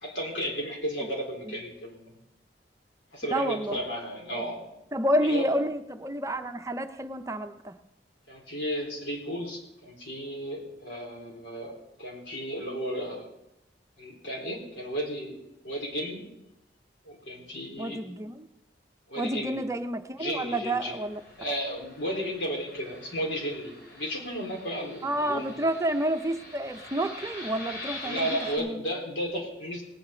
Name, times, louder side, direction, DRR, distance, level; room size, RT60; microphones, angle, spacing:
voice 1, 0.0-2.1 3.1-4.6 5.2-5.5 8.3-13.3 14.0-15.4 15.6-16.2 17.1-18.0 19.1-19.7 20.2-21.0 21.4-25.5 28.0-29.8, equal, 90° left, -1 dB, 4.1 m, -34 dB
voice 2, 3.3-3.8 4.9-7.7 17.8-18.5 19.2-21.2 25.0-28.3 28.6-28.8, right 1 dB, 15° right, 7 dB, 0.6 m, -29 dB
Fixed-wing aircraft airplane, 20.9-28.6, left 2 dB, 65° left, 3.7 m, -43 dB
19.0 x 9.3 x 4.4 m, 0.88 s
head